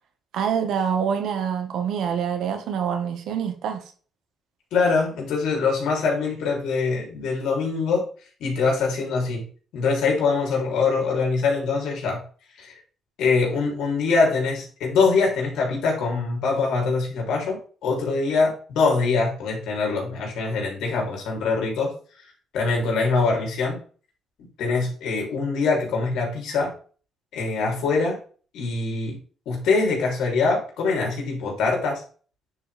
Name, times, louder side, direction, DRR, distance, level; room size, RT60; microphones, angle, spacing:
voice 1, 0.3-3.8, right 7 dB, 80° right, 1.6 m, -26 dB
voice 2, 4.7-8.1 8.4-9.4 9.7-12.2 12.6-12.7 13.2-21.9 22.5-23.8 24.6-26.7 27.3-28.2 28.5-29.2 29.5-32.0, left 4 dB, 85° left, 3.5 m, -23 dB
9.6 x 4.9 x 3.5 m
cardioid pair, 90°, 0 cm